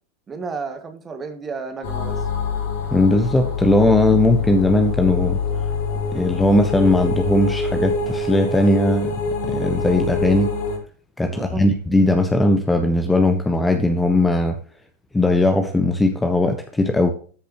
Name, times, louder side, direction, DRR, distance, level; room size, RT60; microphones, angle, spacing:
voice 1, 0.3-2.2 11.3-11.6, right 4 dB, 20° right, 7 dB, 1.9 m, -32 dB
sound 1, 1.8-10.8, left 4 dB, 50° left, 2.9 m, -25 dB
voice 2, 2.9-5.4 6.1-9.1 9.5-10.5 11.2-14.6 15.1-17.1, left 2 dB, 10° left, 6 dB, 1.1 m, -18 dB
13.5 x 6.7 x 3.0 m, 0.41 s
figure-of-eight pair, 90°, 0 cm